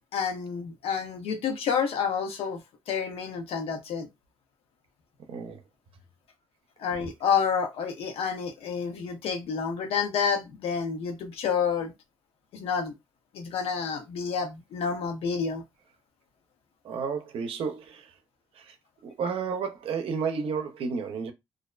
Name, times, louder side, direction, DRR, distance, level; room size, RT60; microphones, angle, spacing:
voice 1, 0.1-4.1 6.8-11.9 12.5-12.9 13.3-15.6, left 6 dB, 75° left, 0.6 m, -29 dB
voice 2, 5.3-5.6 16.8-18.1 18.7-18.8 19.0-21.3, right 5 dB, 65° right, 0.5 m, -31 dB
2.5 x 2.0 x 2.4 m
supercardioid pair, 60°, 10 cm